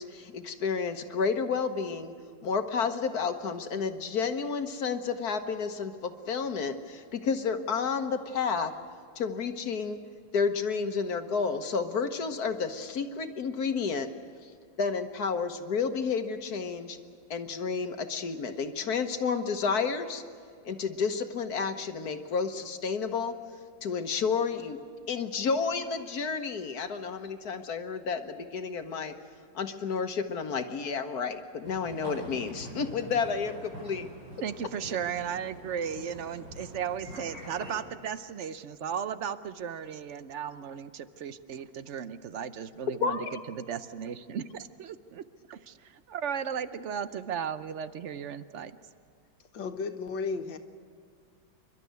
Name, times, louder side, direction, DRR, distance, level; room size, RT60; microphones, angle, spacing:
voice 1, 0.0-2.1 2.4-8.7 9.2-10.0 10.3-14.1 14.8-17.0 17.3-20.2 20.6-23.3 23.8-24.8 25.1-29.1 29.5-34.1 43.0-43.4, left 5 dB, 60° left, 7 dB, 1.6 m, -31 dB
sound 1, 31.6-37.7, right 1 dB, 85° right, 7.5 m, -45 dB
voice 2, 34.4-45.2 45.5-48.7, right 8 dB, 60° right, 13 dB, 0.7 m, -36 dB
voice 3, 49.5-50.6, left 4 dB, 85° left, 6 dB, 2.0 m, -33 dB
29.0 x 12.5 x 9.4 m, 2.2 s
omnidirectional pair, 2.0 m